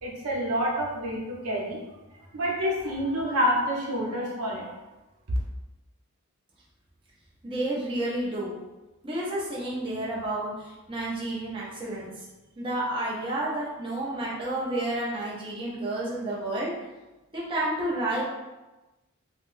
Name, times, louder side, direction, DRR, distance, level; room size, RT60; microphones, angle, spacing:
voice 1, 0.0-1.8 2.3-4.7, equal, 80° right, -3 dB, 0.7 m, -28 dB
voice 2, 7.4-8.5 9.0-12.2 12.6-16.7 17.3-18.2, right 1 dB, 25° right, -6 dB, 0.6 m, -30 dB
3.8 x 2.1 x 2.5 m, 1.1 s
head